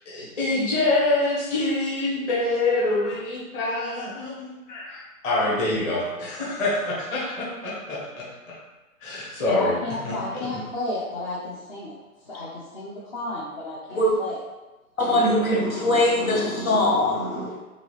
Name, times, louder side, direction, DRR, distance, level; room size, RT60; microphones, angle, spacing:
voice 1, 0.1-4.5 5.2-8.5 9.0-9.7 10.0-10.1, left 2 dB, 20° left, -7 dB, 1.1 m, -25 dB
voice 2, 4.7-5.0 9.5-11.9 12.3-14.4, left 2 dB, 35° left, -6 dB, 0.9 m, -32 dB
voice 3, 15.0-17.6, left 1 dB, 70° left, -4 dB, 1.5 m, -22 dB
3.8 x 3.6 x 3.2 m, 1.1 s
figure-of-eight pair, 135°, 43 cm